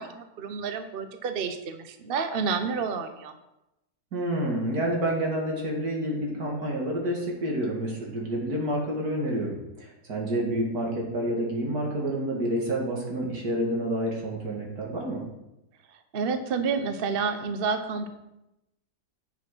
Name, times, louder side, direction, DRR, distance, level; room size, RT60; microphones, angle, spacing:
voice 1, 0.0-3.3 16.1-18.1, right 5 dB, 45° right, 8 dB, 0.9 m, -29 dB
voice 2, 4.1-15.2, right 1 dB, 75° right, -1 dB, 2.9 m, -29 dB
9.3 x 6.6 x 6.1 m, 0.91 s
omnidirectional pair, 1.6 m